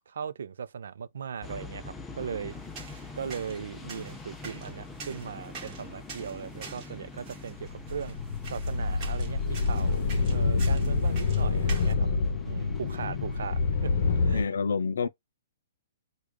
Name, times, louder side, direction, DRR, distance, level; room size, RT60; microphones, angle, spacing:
voice 1, 0.1-2.6 3.1-8.2 8.5-12.1 12.4-14.5, right 7 dB, 75° right, 0.5 m, -38 dB
sound 1, 1.4-14.3, left 3 dB, 5° left, 0.4 m, -45 dB
sound 2, 2.5-11.9, right 5 dB, 25° right, 1.1 m, -47 dB
sound 3, 7.6-14.4, left 4 dB, 50° left, 0.7 m, -27 dB
voice 2, 14.3-15.1, left 5 dB, 85° left, 0.4 m, -28 dB
4.9 x 2.3 x 2.2 m
hypercardioid pair, 170°, 0 cm